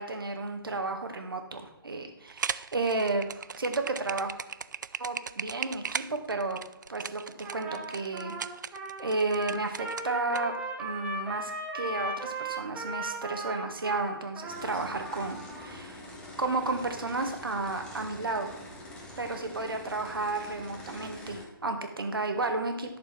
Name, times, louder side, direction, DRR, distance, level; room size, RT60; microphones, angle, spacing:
voice 1, 0.0-4.3 5.0-6.6 6.9-7.2 7.5-8.4 9.0-10.5 10.8-16.1 16.4-18.5 19.2-23.0, right 3 dB, 65° right, 5 dB, 1.9 m, -32 dB
sound 1, 2.3-10.4, right 6 dB, 50° right, 0.4 m, -37 dB
Trumpet, 7.4-15.7, right 2 dB, 10° right, 1.1 m, -37 dB
sound 2, 14.5-21.4, left 1 dB, 5° left, 1.5 m, -45 dB
11.5 x 6.8 x 4.3 m, 0.92 s
figure-of-eight pair, 145°, 12 cm